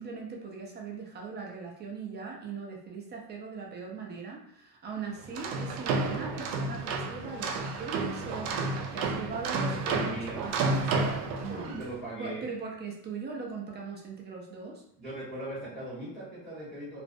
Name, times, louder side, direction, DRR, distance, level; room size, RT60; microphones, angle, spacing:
voice 1, 0.0-11.8 12.2-14.8, right 5 dB, 20° right, 0 dB, 0.4 m, -40 dB
sound 1, 5.2-11.9, right 3 dB, 70° right, 0.6 m, -31 dB
voice 2, 9.7-10.4 11.5-12.5 15.0-17.0, right 1 dB, ahead, -9 dB, 0.9 m, -39 dB
2.4 x 2.0 x 2.5 m, 0.71 s
supercardioid pair, 105°, 50 cm